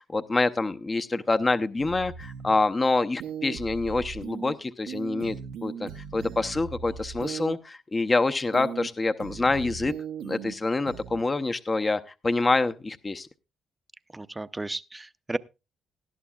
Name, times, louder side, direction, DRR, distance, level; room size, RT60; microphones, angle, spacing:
voice 1, 0.0-5.4 5.6-9.9 10.2-13.3, left 3 dB, 25° left, 0.7 m, -26 dB
sound 1, 1.8-2.5 3.2-4.5 4.9-7.5 8.5-8.9 9.2-10.5 10.9-11.2, right 7 dB, 85° right, 0.9 m, -38 dB
voice 2, 14.1-15.4, right 2 dB, 15° right, 0.6 m, -34 dB
18.5 x 11.5 x 2.3 m
cardioid pair, 90°, 0 cm